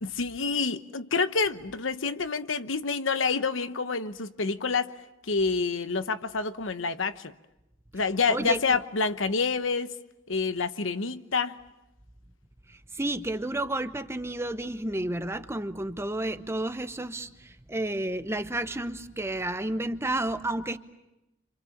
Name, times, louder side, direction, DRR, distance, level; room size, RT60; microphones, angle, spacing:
voice 1, 0.0-4.9 5.3-7.3 7.9-9.9 10.3-11.6, left 4 dB, 80° left, 1.1 m, -28 dB
voice 2, 8.3-8.6 12.7-20.8, right 1 dB, 15° right, 0.9 m, -31 dB
28.0 x 27.0 x 7.2 m
head